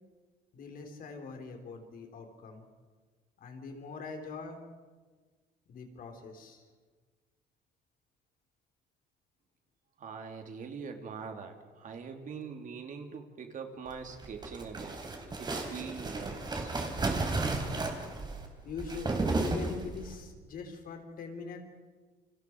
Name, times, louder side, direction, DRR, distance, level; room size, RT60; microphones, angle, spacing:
voice 1, 0.5-2.6 3.4-4.6 5.7-6.6 18.6-21.6, left 4 dB, 55° left, 4 dB, 4.1 m, -43 dB
voice 2, 10.0-15.0 15.4-16.7, right 6 dB, 50° right, 4 dB, 3.0 m, -43 dB
sound 1, 14.1-20.2, right 3 dB, 25° right, 3.8 m, -33 dB
29.0 x 25.5 x 4.7 m, 1.4 s
cardioid pair, 110°, 17 cm